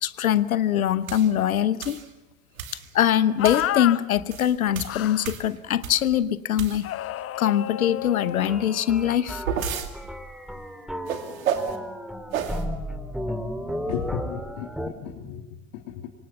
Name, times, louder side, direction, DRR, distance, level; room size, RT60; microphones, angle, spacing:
voice 1, 0.0-2.0 2.9-6.9 7.4-9.4, left 10 dB, 75° left, 16 dB, 1.1 m, -23 dB
sound 1, 1.1-1.3 1.8-2.1 2.6-2.9 3.4-3.7 4.2-6.1 6.5-7.1 9.0-9.9 11.1-11.8 12.3-12.6, right 7 dB, 70° right, 2.6 m, -31 dB
sound 2, 3.4-4.0 4.8-5.3 6.8-9.2, left 13 dB, 35° left, 0.9 m, -31 dB
sound 3, 8.5-14.9, equal, ahead, 2.5 m, -34 dB
voice 2, 13.8-15.4 15.7-16.1, left 8 dB, 60° left, 2 dB, 2.9 m, -34 dB
26.5 x 24.5 x 7.2 m, 1.0 s
figure-of-eight pair, 70°, 42 cm